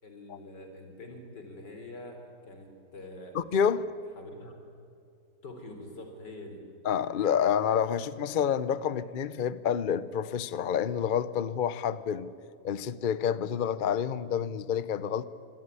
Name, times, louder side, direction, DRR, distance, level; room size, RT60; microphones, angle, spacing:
voice 1, 0.0-3.4 4.2-4.5 5.4-6.6, left 1 dB, 80° left, 5 dB, 4.1 m, -45 dB
voice 2, 3.3-3.8 6.8-12.3 12.6-15.2, left 8 dB, 55° left, 16 dB, 0.5 m, -28 dB
24.5 x 18.0 x 9.8 m, 2.5 s
omnidirectional pair, 1.8 m